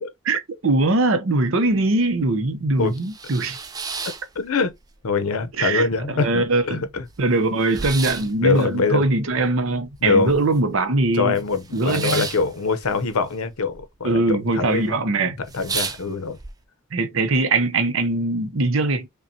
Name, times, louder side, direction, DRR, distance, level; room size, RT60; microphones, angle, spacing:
voice 1, 0.3-3.6 5.6-6.8 7.2-11.3 11.7-12.3 14.0-15.4 16.9-19.1, right 2 dB, 60° right, 0.7 m, -21 dB
sound 1, 1.7-1.8 2.2-2.3 2.7-4.9 5.3-6.0 6.3-6.4 6.6-10.8 11.0-13.8 14.1-14.6 15.0-15.1 15.4-16.5, right 5 dB, 15° right, 0.4 m, -33 dB
voice 2, 4.4-4.7 5.0-7.1 8.4-9.0 10.0-10.3 11.1-14.8 15.4-16.4, left 4 dB, 80° left, 0.7 m, -23 dB
5.4 x 2.2 x 2.7 m
head